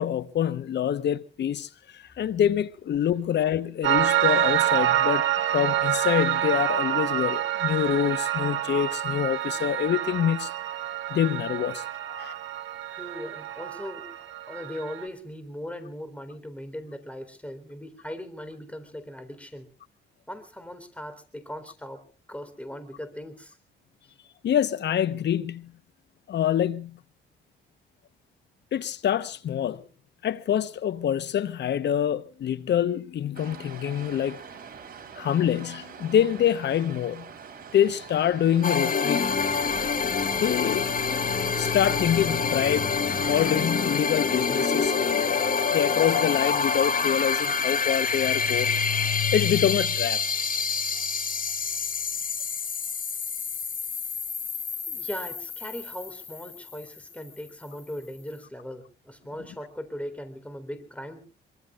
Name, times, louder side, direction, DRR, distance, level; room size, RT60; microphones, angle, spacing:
voice 1, 0.0-10.5 11.1-12.3 24.4-25.7 26.3-27.0 28.7-29.8 30.2-34.4 35.2-37.3 37.7-39.2 40.3-45.4 45.7-50.3, left 10 dB, 60° left, 1.0 m, -26 dB
Piano, 3.8-15.1, right 12 dB, 75° right, 1.7 m, -27 dB
voice 2, 12.9-14.2 14.5-19.7 20.3-23.6 54.9-61.2, equal, 5° left, 3.9 m, -39 dB
sound 1, 33.3-49.2, right 6 dB, 50° right, 3.8 m, -44 dB
sound 2, 38.6-57.1, left 5 dB, 45° left, 2.0 m, -27 dB
24.0 x 23.5 x 2.4 m
cardioid pair, 90°, 20 cm